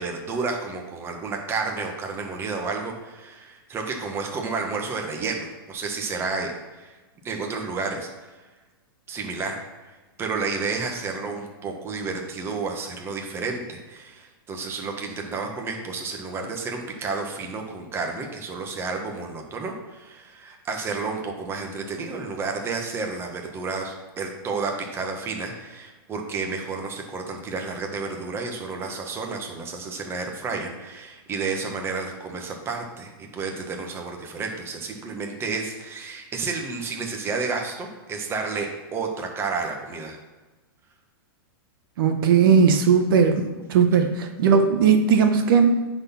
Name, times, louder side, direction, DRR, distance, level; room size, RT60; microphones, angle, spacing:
voice 1, 0.0-7.0 7.2-8.1 9.1-9.6 9.8-40.2, right 4 dB, 20° right, 2 dB, 1.4 m, -31 dB
voice 2, 42.0-43.4 43.7-45.7, right 6 dB, 65° right, 5 dB, 1.1 m, -18 dB
9.6 x 4.3 x 5.9 m, 1.2 s
hypercardioid pair, 140°, 12 cm